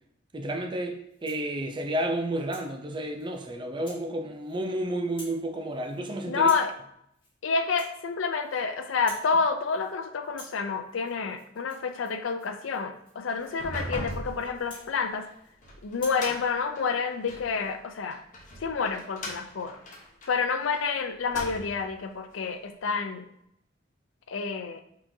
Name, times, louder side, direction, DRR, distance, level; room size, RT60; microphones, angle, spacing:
voice 1, 0.3-6.5, right 1 dB, 25° right, 0.5 m, -31 dB
Rattle (instrument), 1.0-1.5 2.0-2.7 3.2-3.4 3.8-4.0 4.3-4.8 5.0-5.4 5.7-6.0 6.4-6.7 7.1-7.3 7.6-8.6 8.9-9.3 9.6-10.0 10.2-15.5 15.9-16.2, left 1 dB, 25° left, 1.6 m, -50 dB
voice 2, 6.3-6.7 7.4-15.3 15.8-18.2 18.6-19.8 20.3-23.3 24.3-24.8, left 5 dB, 85° left, 0.5 m, -29 dB
sound 1, 13.5-17.5 18.1-20.8 21.2-21.9, left 1 dB, 45° left, 1.1 m, -39 dB
4.8 x 3.7 x 2.7 m
head